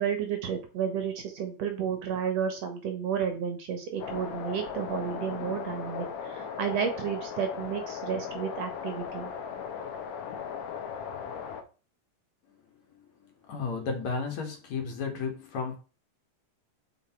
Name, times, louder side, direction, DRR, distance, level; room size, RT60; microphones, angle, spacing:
voice 1, 0.0-9.3, right 7 dB, 65° right, 2.0 m, -32 dB
sound 1, 4.0-11.6, left 7 dB, 90° left, 2.6 m, -37 dB
voice 2, 13.5-15.8, left 5 dB, 65° left, 2.9 m, -33 dB
7.0 x 5.9 x 4.4 m
omnidirectional pair, 3.6 m